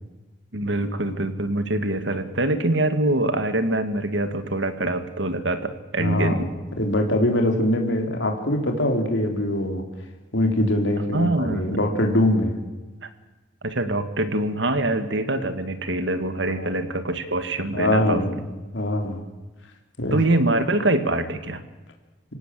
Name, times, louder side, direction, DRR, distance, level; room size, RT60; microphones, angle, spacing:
voice 1, 0.5-6.5 11.1-11.8 13.6-18.3 20.1-21.6, right 2 dB, 65° right, 10 dB, 2.0 m, -24 dB
voice 2, 6.0-6.5 6.8-9.8 10.3-12.6 16.5-16.7 17.7-18.4 18.7-19.2 20.0-20.2, left 1 dB, 75° left, 3 dB, 3.5 m, -23 dB
26.0 x 17.5 x 7.7 m, 1.2 s
head